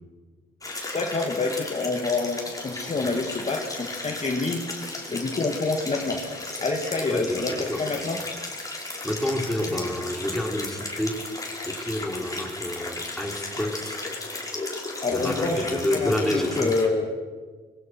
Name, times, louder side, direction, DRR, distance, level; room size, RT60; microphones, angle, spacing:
sound 1, 0.6-16.9, left 2 dB, 15° left, 4.9 m, -35 dB
voice 1, 0.9-4.6 5.1-6.2 6.6-8.2 15.0-17.1, left 3 dB, 35° left, 1 dB, 2.5 m, -27 dB
Burping eructation, 5.7-5.8 6.0-6.2 7.0-7.1 7.3-7.8 9.2-9.3 9.7-10.1, left 5 dB, 50° left, 2.3 m, -43 dB
voice 2, 7.1-7.8 9.0-11.3 11.7-14.0 15.1-16.7, left 1 dB, ahead, 0 dB, 4.3 m, -29 dB
25.5 x 22.0 x 6.4 m, 1.5 s
cardioid pair, 90°, 20 cm